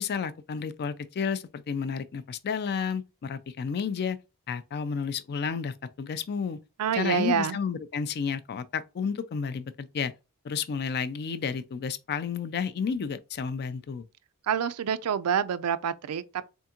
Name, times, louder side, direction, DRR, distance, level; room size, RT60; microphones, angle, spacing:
voice 1, 0.0-4.2 4.5-6.6 6.9-10.1 10.4-14.1, left 6 dB, 45° left, 0.4 m, -31 dB
voice 2, 6.8-7.6 14.5-16.2, right 7 dB, 80° right, 0.4 m, -27 dB
3.6 x 3.5 x 2.8 m
head